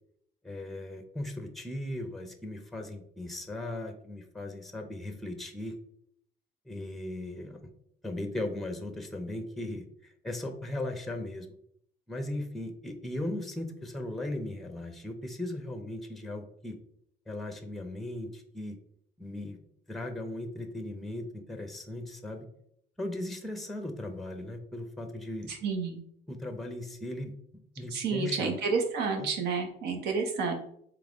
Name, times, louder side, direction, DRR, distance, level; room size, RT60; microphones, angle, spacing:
voice 1, 0.4-5.8 6.7-7.7 8.0-11.5 12.1-16.8 17.3-18.8 19.2-19.6 19.9-22.5 23.0-25.5 26.3-27.3 27.8-28.6 29.1-29.3, left 1 dB, ahead, 6 dB, 0.6 m, -37 dB
voice 2, 25.6-26.0 27.9-30.5, right 4 dB, 80° right, 5 dB, 0.9 m, -30 dB
3.6 x 3.5 x 3.5 m, 0.70 s
cardioid pair, 110°, 17 cm